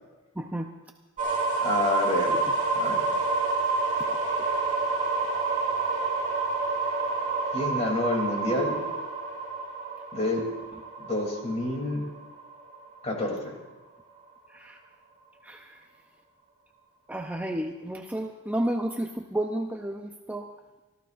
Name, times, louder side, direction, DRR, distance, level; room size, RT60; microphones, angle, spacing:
voice 1, 0.4-0.7 14.5-14.8 15.4-15.8 17.1-20.5, right 1 dB, 5° right, 3 dB, 0.5 m, -31 dB
sound 1, 1.2-13.0, right 3 dB, 35° right, 3.9 m, -28 dB
voice 2, 1.6-3.0 7.5-8.8 10.1-10.5 11.0-12.1 13.0-13.6, left 1 dB, 30° left, 0 dB, 3.0 m, -28 dB
26.0 x 14.5 x 2.5 m, 1.2 s
head